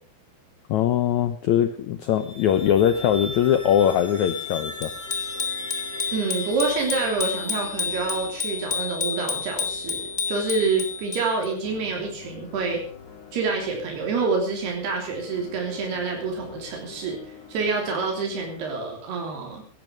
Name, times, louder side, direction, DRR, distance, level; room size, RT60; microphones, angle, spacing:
voice 1, 0.7-4.9, left 10 dB, 80° left, 10 dB, 1.7 m, -21 dB
sound 1, 2.1-8.7, left 3 dB, 40° left, 0.8 m, -39 dB
sound 2, 2.5-18.7, left 7 dB, 55° left, 5.1 m, -45 dB
Bicycle bell, 4.8-11.5, left 5 dB, 20° left, 1.7 m, -30 dB
voice 2, 6.1-12.8 13.3-17.2 17.5-19.6, right 4 dB, 80° right, 1 dB, 5.3 m, -27 dB
17.0 x 12.5 x 5.2 m, 0.40 s
omnidirectional pair, 4.5 m